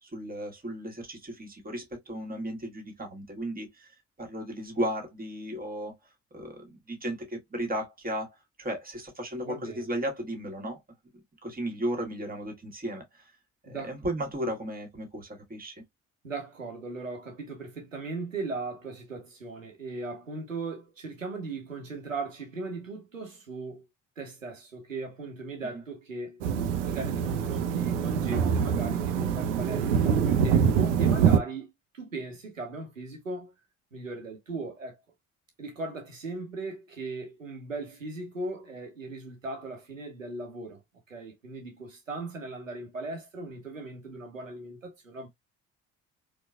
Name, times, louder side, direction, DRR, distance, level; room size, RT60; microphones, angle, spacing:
voice 1, 0.0-3.9 4.2-5.9 6.3-10.8 11.4-13.3 13.6-15.8 25.7-25.8, right 1 dB, 25° right, 1.5 m, -35 dB
voice 2, 9.4-9.9 13.7-13.9 16.2-23.9 24.2-26.4 26.8-33.5 33.9-35.0 35.6-40.8 41.1-45.3, right 3 dB, 85° right, 0.9 m, -38 dB
sound 1, 26.4-31.4, right 7 dB, 70° right, 0.6 m, -25 dB
4.3 x 2.4 x 2.2 m
figure-of-eight pair, 50°, 38 cm